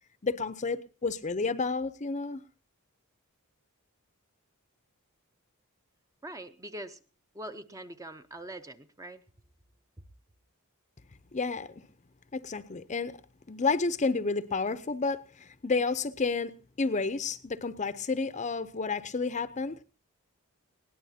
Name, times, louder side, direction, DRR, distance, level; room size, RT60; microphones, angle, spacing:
voice 1, 0.2-2.4 11.3-11.7 12.3-13.1 13.5-19.8, left 4 dB, 30° left, 0.6 m, -30 dB
voice 2, 6.2-7.0 7.3-9.2, right 1 dB, 15° right, 0.7 m, -43 dB
20.5 x 17.5 x 2.8 m
head